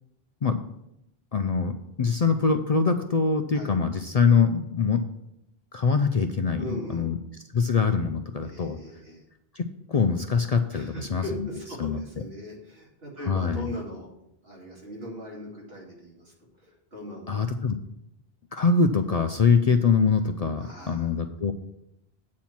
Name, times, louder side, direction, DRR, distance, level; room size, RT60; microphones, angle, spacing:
voice 1, 1.3-5.0 5.7-7.2 7.5-8.8 9.5-11.2 11.8-12.0 13.3-13.7 17.3-17.8 18.5-21.5, left 5 dB, 50° left, 7 dB, 0.5 m, -23 dB
voice 2, 6.5-7.1 8.4-9.2 10.7-14.1 14.4-17.5 20.6-21.2, equal, 70° right, -4 dB, 2.8 m, -39 dB
8.4 x 4.4 x 7.3 m, 0.82 s
omnidirectional pair, 1.0 m